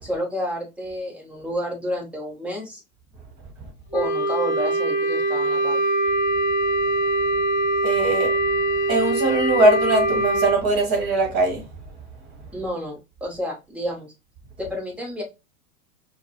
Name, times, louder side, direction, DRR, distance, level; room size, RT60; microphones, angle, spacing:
voice 1, 0.0-2.8 3.9-5.8 12.5-14.1 14.6-15.2, equal, 5° right, 1.0 m, -30 dB
Wind instrument woodwind instrument, 3.9-10.6, right 2 dB, 35° left, 0.4 m, -22 dB
voice 2, 7.8-8.3 8.9-11.6, right 2 dB, 25° right, 1.5 m, -20 dB
4.5 x 2.3 x 2.9 m
figure-of-eight pair, 100°, 45 cm